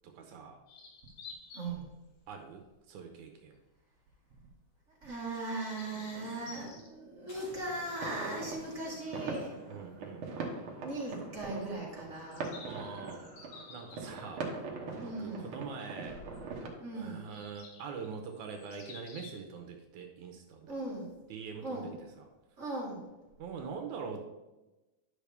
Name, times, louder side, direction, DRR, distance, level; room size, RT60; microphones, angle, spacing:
voice 1, 0.0-0.6 2.3-3.6 9.7-10.3 12.6-13.3 13.7-14.5 15.0-16.2 16.9-20.8 21.3-22.3 23.4-24.3, right 5 dB, 75° right, 4 dB, 2.2 m, -44 dB
sound 1, 0.7-1.8 2.3-2.5 3.3-3.5 5.3-6.9 9.3-9.4 9.7-9.8 12.1-14.5 16.3-16.4 17.2-19.4, left 4 dB, 90° left, 3.0 m, -52 dB
voice 2, 1.5-1.9 5.0-9.6 10.4-12.6 15.0-15.5 16.8-17.2 20.7-21.1 21.6-21.9 22.6-23.1, right 2 dB, 30° right, -4 dB, 1.6 m, -39 dB
sound 2, 5.7-7.0 7.3-9.9 10.3-10.4 10.7-10.8 11.9-12.4 12.8-13.5 14.5-15.1, left 2 dB, 60° left, 4.3 m, -56 dB
sound 3, 7.7-16.7, right 3 dB, 55° right, 1.7 m, -42 dB
10.5 x 6.3 x 3.4 m, 1.1 s
omnidirectional pair, 3.5 m